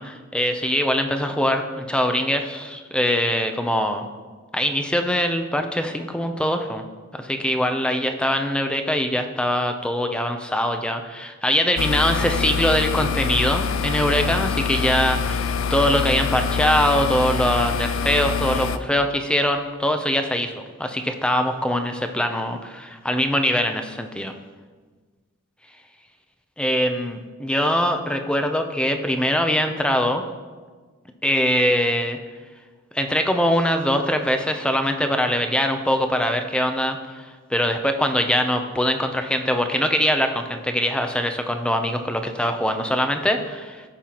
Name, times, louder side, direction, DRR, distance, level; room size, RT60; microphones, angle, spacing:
voice 1, 0.0-4.0 4.5-6.8 7.1-20.5 20.8-24.3 26.6-30.2 31.2-32.2 32.9-43.8, equal, 5° left, 6 dB, 0.5 m, -22 dB
sound 1, 11.8-18.8, left 6 dB, 65° left, 0.4 m, -25 dB
15.0 x 5.5 x 2.9 m, 1.4 s
head